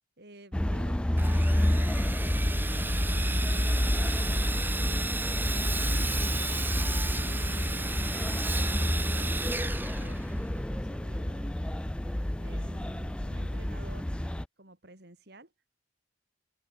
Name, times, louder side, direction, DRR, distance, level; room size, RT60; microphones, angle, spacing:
voice 1, 0.2-1.0 1.3-2.5 2.8-6.1 6.5-11.5 12.4-14.1 14.6-15.5, right 1 dB, 60° right, 5.3 m, -52 dB
sound 1, 0.5-14.4, left 1 dB, 5° left, 0.3 m, -29 dB
Sawing, 1.2-10.6, right 3 dB, 10° right, 0.8 m, -35 dB
open air
head